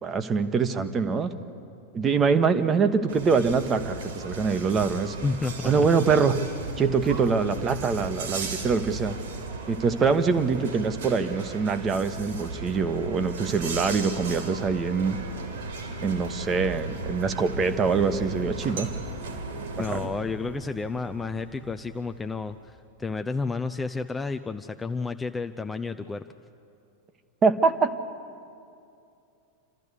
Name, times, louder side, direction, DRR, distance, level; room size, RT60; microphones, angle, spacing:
voice 1, 0.0-1.3 1.9-5.1 5.6-6.4 6.8-9.2 9.7-15.2 16.0-18.9 19.9-20.1 27.4-27.9, right 5 dB, 25° right, 10 dB, 1.1 m, -24 dB
sound 1, 3.1-20.1, right 3 dB, 60° right, 2.8 m, -36 dB
voice 2, 5.2-5.9 19.8-26.2, left 4 dB, 10° left, 8 dB, 0.5 m, -31 dB
sound 2, 13.3-22.9, equal, 80° right, 1.8 m, -43 dB
28.5 x 13.5 x 8.3 m, 2.6 s
figure-of-eight pair, 90°, 0 cm